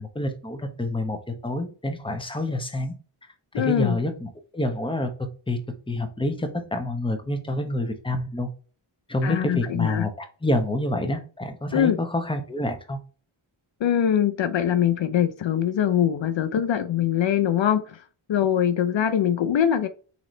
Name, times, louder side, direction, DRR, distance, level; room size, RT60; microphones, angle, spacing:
voice 1, 0.0-2.9 3.5-5.1 5.5-5.6 5.9-8.5 9.1-13.0, left 1 dB, 10° left, 6 dB, 0.8 m, -27 dB
voice 2, 3.5-4.0 9.2-10.1 11.7-12.0 13.8-19.9, left 9 dB, 65° left, 9 dB, 0.5 m, -23 dB
4.0 x 2.9 x 3.1 m, 0.38 s
wide cardioid pair, 60°, 50 cm